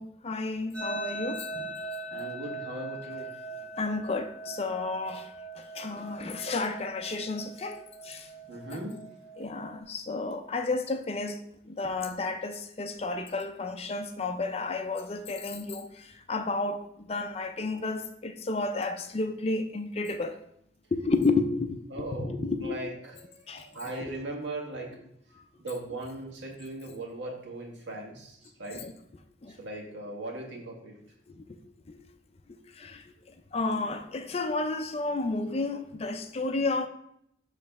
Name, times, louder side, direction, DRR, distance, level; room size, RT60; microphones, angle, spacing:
voice 1, 0.0-1.7 3.8-8.3 8.7-8.8 9.4-20.4 20.9-22.8 23.5-23.7 24.0-24.1 28.7-28.9 29.4-29.6 31.4-31.6 31.9-32.0 32.5-33.0 33.5-36.9, left 3 dB, 35° left, 0.4 m, -32 dB
sound 1, 0.7-9.8, right 2 dB, 5° left, 1.9 m, -41 dB
voice 2, 1.8-3.3 5.6-5.7 8.5-9.0 21.9-22.4 22.6-25.0 25.3-28.8 29.5-31.0, right 2 dB, 75° right, 1.6 m, -39 dB
6.8 x 3.2 x 5.4 m
head